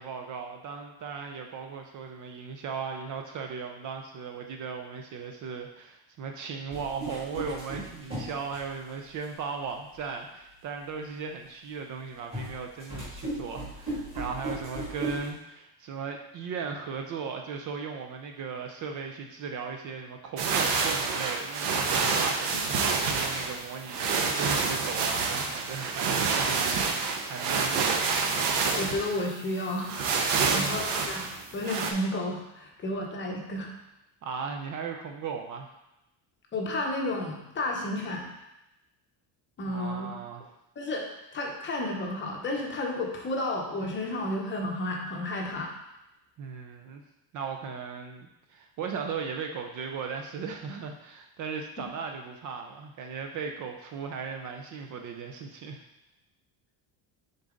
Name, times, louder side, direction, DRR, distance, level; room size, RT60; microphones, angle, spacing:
voice 1, 0.0-28.2 30.3-30.8 34.2-35.7 39.6-40.4 46.4-47.0 47.3-55.8, right 5 dB, 40° right, 3 dB, 0.4 m, -37 dB
sound 1, 6.7-9.2 9.9-10.0 12.3-15.3, right 1 dB, 10° right, 2.2 m, -36 dB
sound 2, 20.4-31.9, right 4 dB, 60° right, 0.9 m, -28 dB
voice 2, 28.8-30.1 30.5-31.3 31.5-33.7 36.5-38.3 39.6-40.1 40.8-45.7 51.8-51.9, left 1 dB, 25° left, 0 dB, 0.8 m, -32 dB
6.6 x 4.0 x 3.7 m, 0.89 s
cardioid pair, 180°, 48 cm